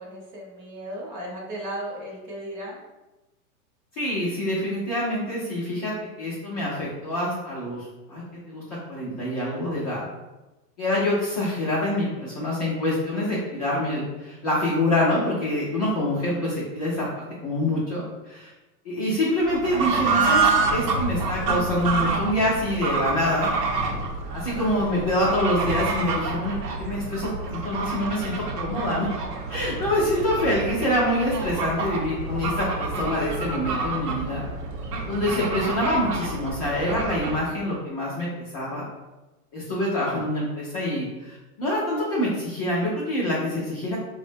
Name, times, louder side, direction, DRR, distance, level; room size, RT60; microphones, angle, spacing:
voice 1, 0.0-2.9, right 1 dB, 35° right, -4 dB, 0.8 m, -35 dB
voice 2, 4.0-8.6 8.9-10.0 10.8-18.5 18.8-23.5 24.3-34.4 35.1-38.3 38.5-38.8 39.5-44.0, left 1 dB, 25° left, -9 dB, 0.4 m, -26 dB
Fowl / Bird, 19.4-37.5, right 4 dB, 90° right, 0.7 m, -28 dB
3.6 x 2.1 x 2.6 m, 1.1 s
supercardioid pair, 160°, 46 cm